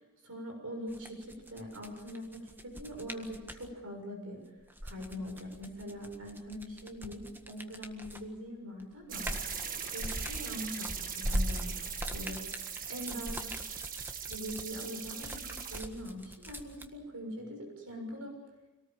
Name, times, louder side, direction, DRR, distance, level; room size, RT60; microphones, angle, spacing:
voice 1, 0.2-4.4 4.8-9.3 9.9-11.7 12.1-12.4 12.9-13.5 14.3-18.4, equal, 70° right, 2 dB, 6.7 m, -42 dB
sound 1, 0.9-3.7 4.6-8.4 8.8-16.9, equal, 10° right, 1.7 m, -40 dB
sound 2, 9.1-15.8, right 7 dB, 40° right, 1.7 m, -40 dB
26.5 x 19.0 x 7.5 m, 1.1 s
head